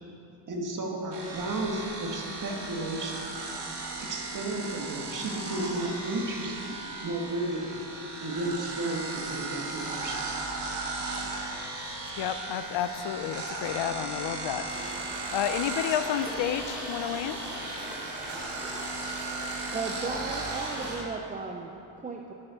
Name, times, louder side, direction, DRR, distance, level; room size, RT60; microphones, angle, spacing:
voice 1, 0.5-3.2 4.0-6.8 7.0-7.8 8.2-10.7, right 2 dB, 40° right, 0 dB, 1.7 m, -33 dB
sound 1, 1.1-21.0, right 3 dB, 60° right, 2.0 m, -36 dB
voice 2, 11.5-18.0, left 9 dB, 70° left, 10 dB, 0.7 m, -32 dB
sound 2, 14.7-21.0, equal, ahead, 2.7 m, -41 dB
voice 3, 19.7-22.3, right 4 dB, 20° right, 1 dB, 0.4 m, -36 dB
11.0 x 8.6 x 6.3 m, 2.9 s
cardioid pair, 160°, 46 cm